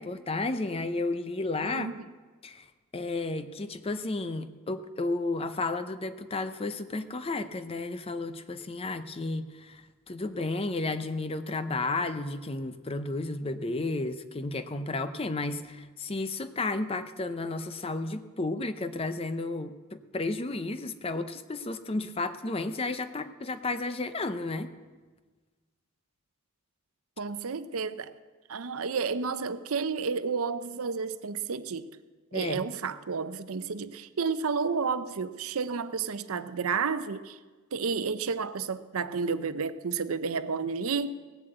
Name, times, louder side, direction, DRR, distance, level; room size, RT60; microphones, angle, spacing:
voice 1, 0.0-1.9 2.4-2.7 2.9-24.7 32.3-32.6, left 2 dB, 25° left, 11 dB, 0.6 m, -32 dB
voice 2, 1.6-2.0 27.2-28.1 28.5-31.9 32.3-37.4 37.7-41.1, right 5 dB, 75° right, 12 dB, 0.6 m, -31 dB
17.5 x 7.5 x 7.8 m, 1.4 s
head